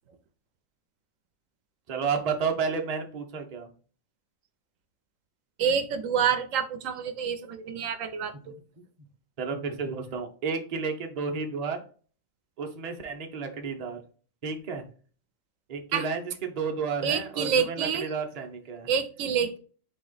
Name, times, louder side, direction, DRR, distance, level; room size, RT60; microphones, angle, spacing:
voice 1, 1.9-3.7 8.5-8.6 9.4-11.8 12.6-14.0 14.4-14.9 15.7-18.9, right 5 dB, 40° right, 3 dB, 0.7 m, -31 dB
voice 2, 5.6-8.5 15.9-16.1 17.0-18.1 18.9-19.6, right 7 dB, 85° right, 9 dB, 1.0 m, -27 dB
4.3 x 2.9 x 3.9 m, 0.41 s
omnidirectional pair, 1.3 m